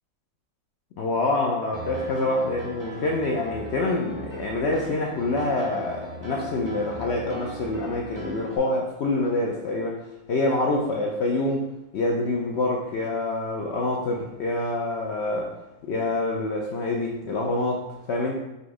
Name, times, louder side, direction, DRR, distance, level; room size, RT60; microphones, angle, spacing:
voice 1, 1.0-9.9 10.3-11.6 11.9-15.5 15.8-18.4, left 2 dB, 70° left, -1 dB, 0.6 m, -26 dB
Piano, 1.7-8.6, equal, 25° right, 0.6 m, -39 dB
4.0 x 2.5 x 4.7 m, 0.93 s
omnidirectional pair, 1.6 m